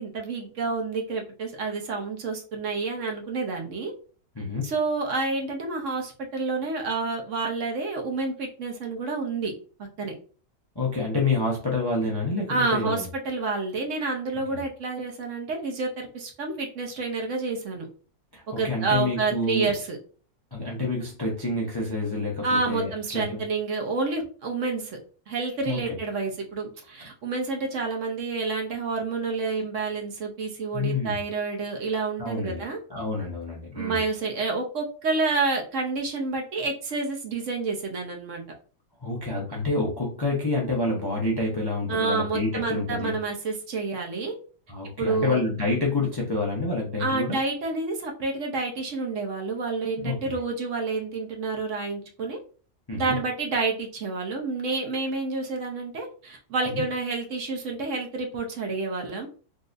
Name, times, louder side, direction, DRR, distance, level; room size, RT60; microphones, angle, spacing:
voice 1, 0.0-3.9 4.6-9.5 9.8-10.1 12.5-17.9 18.5-20.0 22.4-25.0 25.3-32.8 33.8-38.4 41.9-44.4 45.0-45.4 47.0-52.4 52.9-59.3, right 3 dB, 60° right, 1 dB, 1.0 m, -29 dB
voice 2, 4.4-4.7 10.8-13.1 14.5-14.6 18.3-19.7 20.5-23.4 25.7-26.0 30.7-31.2 32.2-32.6 32.9-34.0 39.0-43.1 44.7-47.4 50.0-50.4 52.9-53.2 56.7-56.8, left 2 dB, 30° left, -2 dB, 0.4 m, -28 dB
3.8 x 2.6 x 2.5 m, 0.39 s
omnidirectional pair, 1.6 m